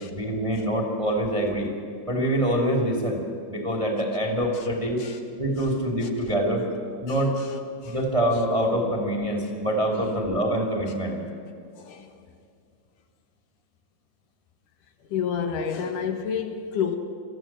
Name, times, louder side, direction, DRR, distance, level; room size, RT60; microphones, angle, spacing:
voice 1, 0.0-1.7 2.1-3.2 3.5-5.0 5.4-6.6 7.0-7.4 7.8-11.2, right 1 dB, 10° right, 1 dB, 2.4 m, -25 dB
voice 2, 5.6-6.3 7.1-8.0 11.8-12.2 15.1-17.0, left 7 dB, 70° left, 5 dB, 2.8 m, -31 dB
24.5 x 14.0 x 7.5 m, 2.4 s
omnidirectional pair, 3.9 m